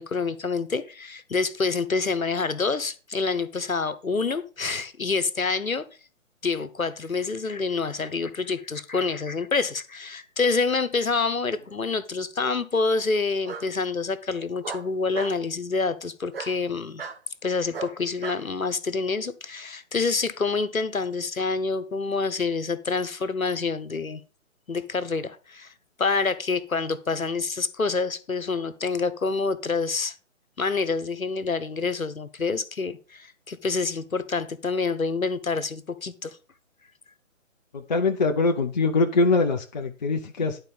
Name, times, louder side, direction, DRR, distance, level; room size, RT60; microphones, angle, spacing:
voice 1, 0.0-5.8 6.4-17.1 17.4-24.2 24.7-25.7 26.0-30.1 30.6-36.4, left 4 dB, 85° left, 13 dB, 1.0 m, -27 dB
Bark, 11.3-11.9 13.4-13.7 14.6-15.4 16.3-16.6 17.0-17.2 17.7-18.4, right 5 dB, 45° right, 1.1 m, -36 dB
voice 2, 37.7-40.6, left 3 dB, 35° left, 3 dB, 0.7 m, -23 dB
10.5 x 4.5 x 5.1 m, 0.35 s
figure-of-eight pair, 140°, 40 cm